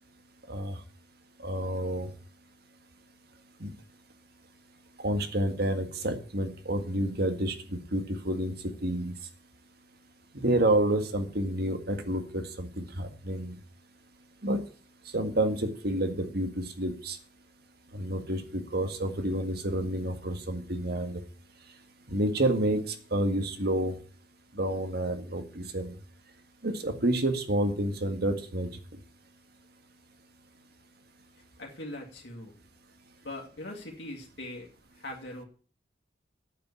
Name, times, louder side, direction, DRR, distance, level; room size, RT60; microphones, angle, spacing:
voice 1, 0.5-0.8 1.4-2.1 3.6-3.7 5.0-8.5 8.8-9.1 10.3-13.6 14.4-14.6 15.1-17.2 17.9-21.2 22.1-24.0 24.5-25.9 26.6-28.7, right 1 dB, 60° right, 7 dB, 1.8 m, -29 dB
voice 2, 31.6-32.5 33.2-35.4, left 1 dB, 70° left, -1 dB, 2.1 m, -41 dB
9.2 x 7.6 x 8.4 m, 0.42 s
head